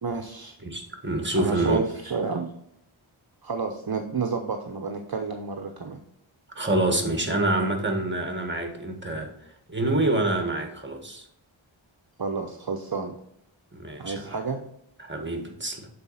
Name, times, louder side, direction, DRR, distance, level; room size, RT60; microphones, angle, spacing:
voice 1, 0.0-0.6 1.3-2.5 3.4-6.0 12.2-13.1 14.0-14.6, right 4 dB, 50° right, 4 dB, 0.8 m, -30 dB
voice 2, 0.6-1.8 6.5-9.3 9.7-11.3 13.7-14.3 15.0-15.9, right 2 dB, 25° right, 4 dB, 1.7 m, -26 dB
7.9 x 4.2 x 5.6 m, 0.74 s
wide cardioid pair, 40°, 48 cm